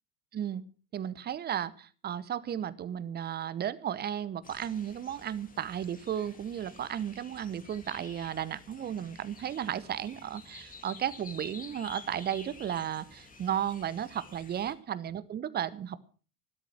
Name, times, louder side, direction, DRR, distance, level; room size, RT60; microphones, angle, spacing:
voice 1, 0.3-0.6 0.9-16.0, right 9 dB, 20° right, 17 dB, 0.9 m, -34 dB
sound 1, 4.4-14.7, left 4 dB, 15° left, 2.3 m, -51 dB
14.0 x 12.5 x 6.0 m, 0.39 s
figure-of-eight pair, 80°, 47 cm